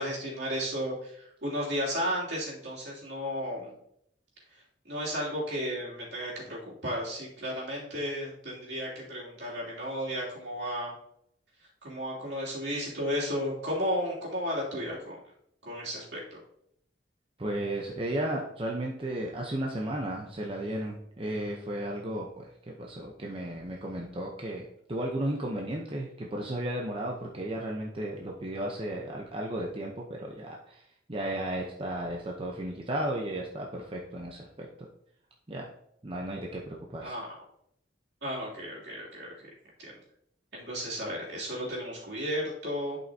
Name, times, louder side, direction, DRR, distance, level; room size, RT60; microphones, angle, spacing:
voice 1, 0.0-3.7 4.8-10.9 11.8-15.2 15.6-16.4 37.0-37.3 38.2-39.3 39.8-39.9 40.5-43.0, equal, 65° right, -5 dB, 2.9 m, -33 dB
voice 2, 17.4-30.8 31.1-34.7 35.5-35.7 36.0-37.2, right 1 dB, 30° right, -1 dB, 0.8 m, -34 dB
11.0 x 5.6 x 2.8 m, 0.73 s
head